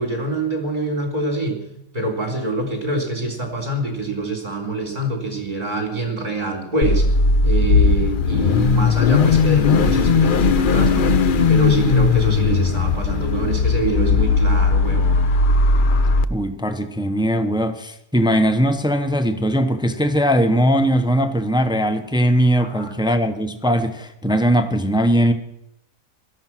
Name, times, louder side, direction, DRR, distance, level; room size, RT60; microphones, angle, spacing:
voice 1, 0.0-1.6 1.9-7.1 7.4-11.1 11.5-15.3 22.6-22.9, right 2 dB, 25° right, 2 dB, 3.7 m, -25 dB
Car / Idling / Accelerating revving vroom, 6.8-16.3, left 4 dB, 65° left, 0.5 m, -17 dB
voice 2, 16.3-25.3, equal, 5° right, 9 dB, 0.5 m, -19 dB
17.0 x 12.5 x 6.0 m, 0.79 s
omnidirectional pair, 1.7 m